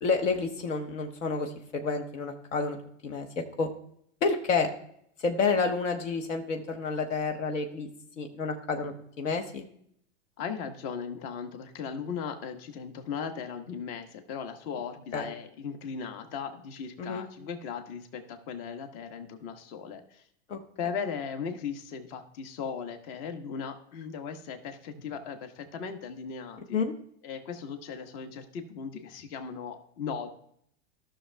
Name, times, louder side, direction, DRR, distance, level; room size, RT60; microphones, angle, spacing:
voice 1, 0.0-2.8 3.0-3.7 4.2-4.7 5.2-7.9 8.2-9.7 15.1-15.3 17.0-17.3 20.5-20.6 26.7-26.8, left 4 dB, 85° left, 4 dB, 1.2 m, -29 dB
voice 2, 10.4-20.2 20.8-26.8 27.2-30.3, left 6 dB, 55° left, 7 dB, 1.2 m, -37 dB
14.0 x 6.3 x 2.2 m, 0.69 s
hypercardioid pair, 120°, 37 cm